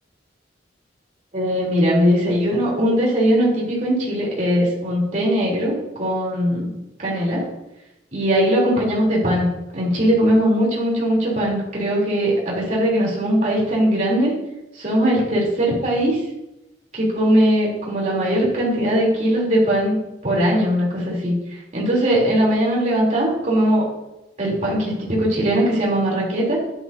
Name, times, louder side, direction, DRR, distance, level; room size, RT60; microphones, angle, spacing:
voice 1, 1.3-5.7 6.0-7.4 8.1-14.3 14.7-16.2 16.9-20.0 20.2-23.9 24.4-26.6, equal, 40° right, -4 dB, 3.6 m, -20 dB
11.5 x 10.0 x 2.8 m, 0.92 s
head